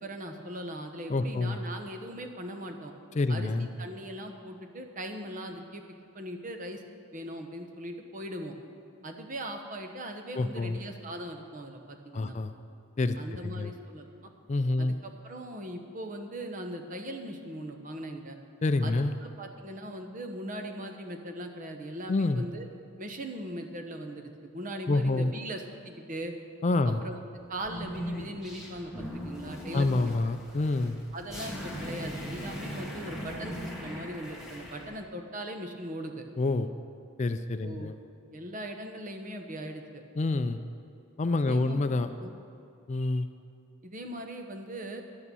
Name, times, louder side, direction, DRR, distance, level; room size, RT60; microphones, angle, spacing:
voice 1, 0.0-2.9 3.3-5.8 6.1-6.8 7.1-8.6 9.0-12.4 13.2-14.3 14.8-18.4 18.8-22.7 23.0-26.3 27.0-27.2 27.5-30.1 31.1-36.2 37.6-37.9 38.3-40.0 41.4-41.8 42.2-42.3 43.8-45.0, right 1 dB, 40° right, 5 dB, 1.0 m, -40 dB
voice 2, 1.1-1.6 3.2-3.7 10.3-10.8 12.1-12.5 13.0-13.2 13.4-13.7 14.5-15.0 18.6-19.1 22.1-22.5 24.9-25.3 26.6-27.0 29.7-31.0 36.4-36.7 37.2-37.9 40.2-40.6 41.2-42.1 42.9-43.3, left 2 dB, 35° left, 9 dB, 0.4 m, -27 dB
sound 1, 27.5-34.9, equal, ahead, 1.7 m, -39 dB
11.0 x 8.6 x 6.9 m, 2.6 s
head